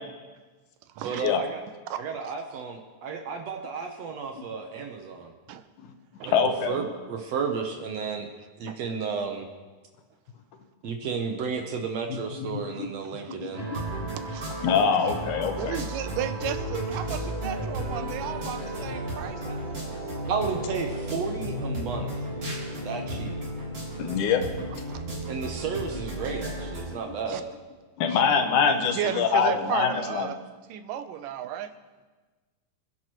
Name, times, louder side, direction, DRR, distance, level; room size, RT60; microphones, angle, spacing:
voice 1, 1.0-1.6 2.0-5.3 6.2-8.3 8.6-9.5 10.8-13.7 20.3-22.1 22.8-23.3 25.3-27.5, right 5 dB, 70° right, 4 dB, 1.8 m, -32 dB
voice 2, 6.3-6.9 12.5-12.9 13.4-13.8 14.6-15.8 18.0-18.1 22.6-22.7 24.0-24.4 27.1-27.2 28.0-30.3, left 6 dB, 75° left, 6 dB, 2.4 m, -24 dB
sound 1, 13.5-26.9, right 1 dB, 45° right, 4.3 m, -33 dB
voice 3, 14.2-14.6 15.6-19.8 24.9-25.0 27.3-27.4 28.9-30.4 30.7-31.7, right 10 dB, 90° right, 10 dB, 2.4 m, -34 dB
26.0 x 10.5 x 3.1 m, 1.3 s
omnidirectional pair, 3.7 m